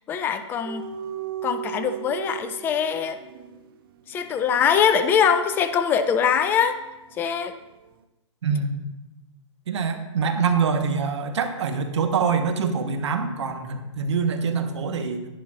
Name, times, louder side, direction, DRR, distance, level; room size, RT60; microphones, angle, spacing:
voice 1, 0.1-0.9 1.4-3.2 4.1-6.8 7.2-7.5, left 7 dB, 10° left, 9 dB, 0.4 m, -22 dB
sound 1, 0.6-7.4 7.7-7.9, right 9 dB, 45° right, 0.6 m, -38 dB
voice 2, 8.4-8.8 9.7-15.3, right 5 dB, 60° right, 7 dB, 1.2 m, -25 dB
11.0 x 10.5 x 2.5 m, 0.99 s
hypercardioid pair, 140°, 16 cm